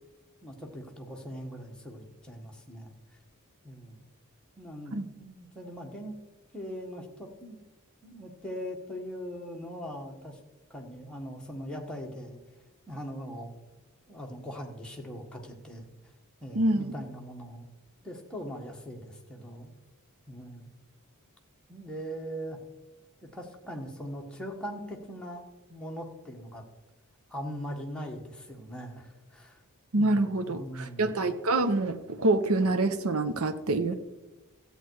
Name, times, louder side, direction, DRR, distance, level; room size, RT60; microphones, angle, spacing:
voice 1, 0.4-2.9 3.6-4.0 4.6-6.1 6.5-7.6 8.0-10.4 10.7-12.4 12.9-13.5 14.1-15.9 16.4-17.7 18.0-19.7 20.3-20.7 21.7-22.6 23.3-26.6 27.3-29.6 30.0-31.1 33.9-34.0, equal, 5° left, -1 dB, 1.5 m, -41 dB
voice 2, 16.5-16.9 29.9-33.9, right 2 dB, 70° right, 10 dB, 0.8 m, -26 dB
14.5 x 8.0 x 4.7 m, 1.1 s
head